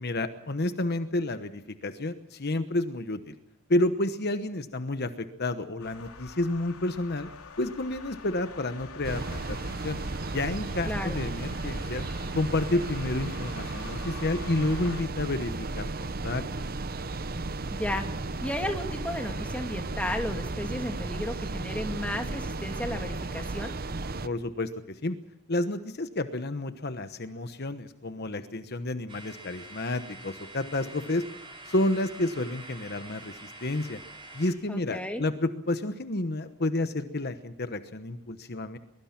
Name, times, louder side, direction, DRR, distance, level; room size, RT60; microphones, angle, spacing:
voice 1, 0.0-3.3 3.7-7.3 7.6-10.0 10.3-12.0 12.3-16.4 24.2-25.2 25.5-31.2 31.6-34.0 34.3-38.8, left 2 dB, 45° left, 10 dB, 1.1 m, -30 dB
sound 1, 5.8-15.0, left 5 dB, 85° left, 3.5 m, -47 dB
sound 2, 9.0-24.3, right 2 dB, 40° right, 0.8 m, -34 dB
voice 2, 10.9-11.2 17.7-18.0 18.4-23.7 34.7-35.2, left 1 dB, 5° left, 4 dB, 2.6 m, -33 dB
sound 3, 29.1-34.5, right 2 dB, 25° right, 5.4 m, -46 dB
23.5 x 22.0 x 5.9 m, 0.88 s
head